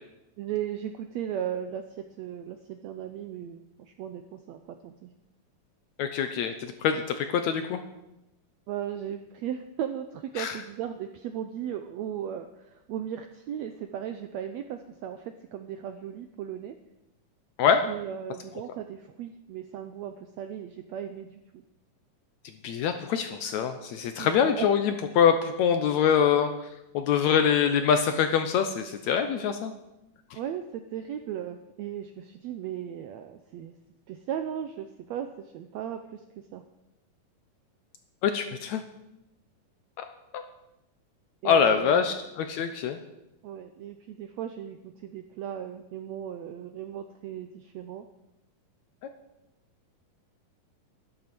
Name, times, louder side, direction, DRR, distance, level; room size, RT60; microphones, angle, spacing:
voice 1, 0.4-5.1 8.7-16.8 17.8-21.6 24.1-24.7 30.3-33.7 34.1-36.2 36.5-36.6 41.4-42.2 43.4-48.1, right 9 dB, 80° right, 8 dB, 1.6 m, -37 dB
voice 2, 6.0-7.0 7.3-7.8 10.4-10.5 17.6-17.8 22.6-26.5 26.9-29.7 38.2-38.8 41.5-43.0, left 7 dB, 75° left, 8 dB, 1.8 m, -24 dB
12.5 x 11.5 x 6.0 m, 0.92 s
omnidirectional pair, 3.9 m